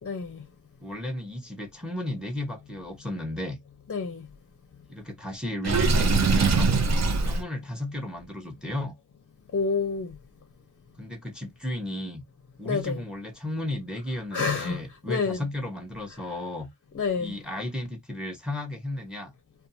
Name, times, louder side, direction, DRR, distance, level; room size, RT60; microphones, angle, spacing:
voice 1, 0.0-0.4 3.9-4.3 9.5-10.1 12.6-13.0 14.3-14.8 15.1-15.4 16.9-17.3, left 5 dB, 40° left, 0.6 m, -28 dB
voice 2, 0.8-3.6 4.9-6.7 7.2-8.9 11.0-12.2 12.6-16.7 17.2-19.3, left 1 dB, ahead, 0.8 m, -34 dB
Water / Sink (filling or washing), 5.6-7.4, right 4 dB, 50° right, 0.6 m, -22 dB
2.5 x 2.3 x 2.6 m
wide cardioid pair, 95°, 35 cm